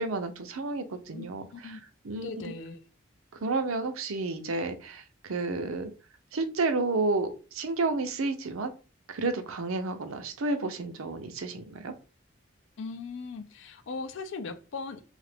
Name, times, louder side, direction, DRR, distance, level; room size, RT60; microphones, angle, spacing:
voice 1, 0.0-1.7 2.0-2.3 3.4-5.9 6.3-8.7 9.1-11.9, right 3 dB, 90° right, 0.6 m, -31 dB
voice 2, 2.1-2.8 12.8-15.0, left 4 dB, 65° left, 0.4 m, -38 dB
2.8 x 2.4 x 3.4 m
head